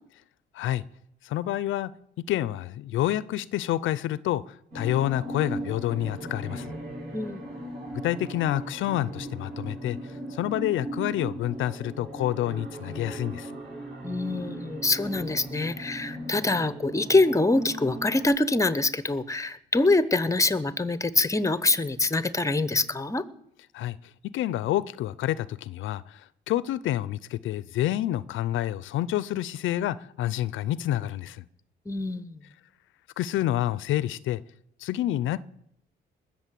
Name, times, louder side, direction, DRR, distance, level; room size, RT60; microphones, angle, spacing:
voice 1, 1.2-1.9 2.2-6.7 8.0-13.5 23.7-24.0 24.3-31.4 33.2-34.4 34.8-35.4, left 13 dB, 80° left, 0.5 m, -28 dB
sound 1, 4.7-18.3, right 1 dB, 55° right, 7.5 m, -38 dB
voice 2, 14.0-23.2 31.9-32.4, left 2 dB, 15° left, 1.0 m, -25 dB
20.0 x 7.4 x 7.5 m
cardioid pair, 90°, 20 cm